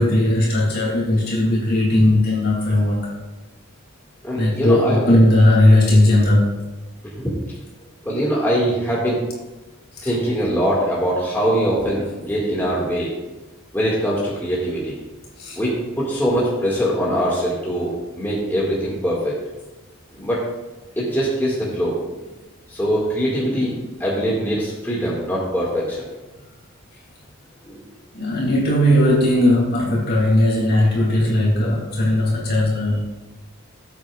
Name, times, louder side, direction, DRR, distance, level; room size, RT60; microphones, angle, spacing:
voice 1, 0.0-3.2 4.3-6.6 9.9-10.1 15.4-15.6 28.1-33.0, left 1 dB, 45° left, -4 dB, 2.9 m, -17 dB
voice 2, 4.2-5.2 7.0-7.3 8.0-9.2 10.0-13.1 13.7-14.9 15.5-19.4 20.1-20.4 21.0-22.1 22.7-26.1 27.6-27.8, equal, 10° left, -6 dB, 2.1 m, -22 dB
18.0 x 8.3 x 2.5 m, 1.1 s
head